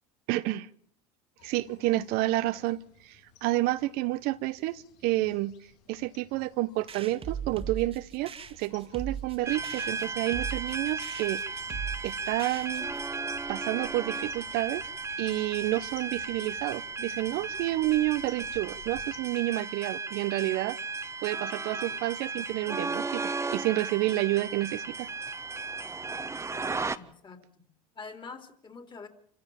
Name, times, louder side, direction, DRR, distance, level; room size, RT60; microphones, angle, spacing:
voice 1, 0.3-0.7 1.4-5.5 5.9-11.4 12.0-12.9 13.5-14.9 15.2-20.8 21.2-25.1, right 17 dB, 60° right, 0.9 m, -30 dB
sound 1, 1.4-19.2, left 5 dB, 65° left, 3.4 m, -56 dB
sound 2, 6.9-13.1, right 7 dB, 30° right, 1.9 m, -40 dB
sound 3, 9.5-27.0, right 4 dB, 15° right, 1.3 m, -35 dB
voice 2, 26.9-27.7 27.9-29.1, left 4 dB, 25° left, 3.8 m, -45 dB
27.0 x 15.5 x 7.3 m
hypercardioid pair, 85°, 18 cm